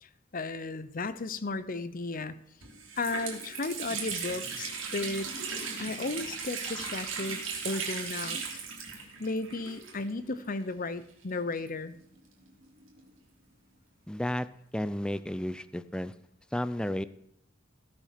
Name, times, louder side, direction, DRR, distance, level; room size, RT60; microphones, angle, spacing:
voice 1, 0.0-2.4 3.0-5.3 5.8-11.9, left 3 dB, 45° left, 14 dB, 0.8 m, -35 dB
Water tap faucet, 2.1-2.2 2.6-10.3 10.6-10.7 11.5-13.1, right 5 dB, 85° right, 3.3 m, -37 dB
voice 2, 14.1-14.5 14.7-16.1 16.5-17.0, left 1 dB, 5° left, 15 dB, 0.5 m, -32 dB
16.5 x 6.2 x 6.7 m, 0.75 s
head